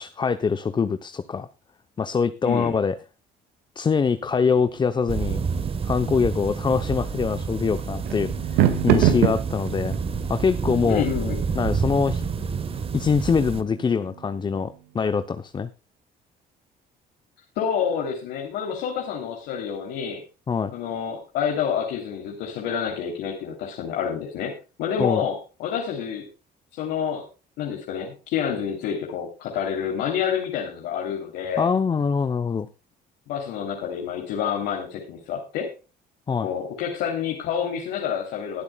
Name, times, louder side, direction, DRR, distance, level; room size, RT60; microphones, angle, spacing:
voice 1, 0.0-1.5 2.0-2.9 3.8-5.4 5.8-9.9 10.3-11.0 11.5-12.2 12.9-15.7 20.5-20.7 25.0-25.2 31.6-32.7 36.3-36.5, left 5 dB, 25° left, 10 dB, 0.7 m, -24 dB
voice 2, 2.4-2.7 10.8-11.4 17.6-20.2 20.7-24.5 24.8-26.2 26.7-27.3 27.6-31.7 33.3-35.7 36.4-38.6, left 8 dB, 85° left, 0 dB, 3.3 m, -28 dB
sound 1, 4.0-14.8, right 10 dB, 85° right, 1.9 m, -29 dB
sound 2, 5.1-13.6, right 5 dB, 35° right, 1.4 m, -29 dB
22.0 x 8.1 x 2.3 m, 0.32 s
cardioid pair, 110°, 17 cm